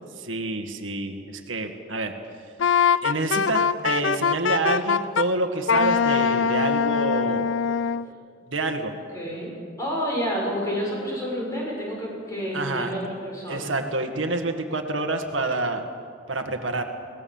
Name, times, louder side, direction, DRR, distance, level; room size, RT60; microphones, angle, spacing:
voice 1, 0.2-2.1 3.0-7.4 8.5-8.9 12.5-12.9 13.5-15.8 16.3-16.8, right 2 dB, 90° right, 5 dB, 1.8 m, -27 dB
Wind instrument woodwind instrument, 2.6-5.3 5.7-8.1, left 6 dB, 75° left, 0.5 m, -22 dB
voice 2, 9.1-9.5 9.8-13.7, equal, 15° left, -3 dB, 6.9 m, -29 dB
22.5 x 18.5 x 7.2 m, 2.3 s
head